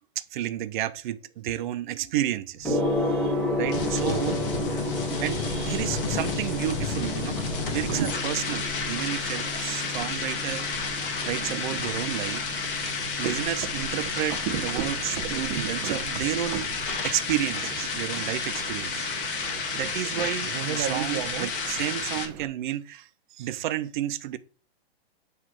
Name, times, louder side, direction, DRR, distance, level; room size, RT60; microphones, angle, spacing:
voice 1, 0.2-4.4 5.1-7.4 7.7-10.6 11.2-12.4 12.9-16.7 17.0-24.4, right 13 dB, 50° right, 0.6 m, -31 dB
sound 1, 2.6-22.3, left 5 dB, 55° left, 1.6 m, -32 dB
Gong, 2.6-21.7, left 2 dB, 5° left, 1.1 m, -34 dB
sound 2, 2.7-22.5, right 9 dB, 15° right, 0.3 m, -37 dB
7.4 x 3.3 x 4.8 m
hypercardioid pair, 145°, 32 cm